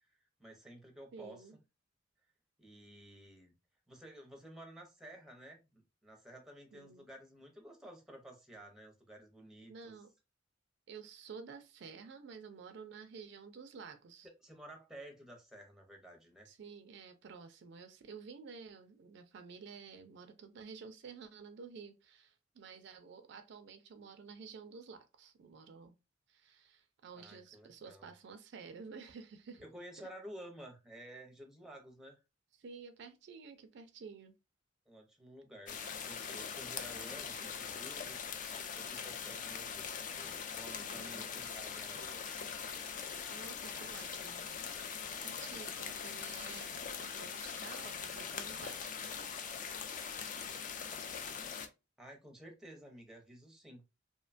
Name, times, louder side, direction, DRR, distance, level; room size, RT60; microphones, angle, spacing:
voice 1, 0.1-1.5 2.6-3.5 3.9-9.9 14.4-16.5 27.1-28.1 29.6-32.2 34.9-38.3 38.7-42.3 52.0-53.8, right 1 dB, 5° right, 0.6 m, -53 dB
voice 2, 1.1-1.6 6.7-7.0 9.6-10.1 10.9-14.3 16.5-26.0 26.3-29.6 30.0-30.1 32.6-34.3 40.8-41.4 43.3-44.4 45.2-48.8, right 5 dB, 65° right, 0.4 m, -51 dB
sound 1, 35.7-51.7, left 6 dB, 40° left, 0.3 m, -42 dB
2.7 x 2.2 x 2.4 m
head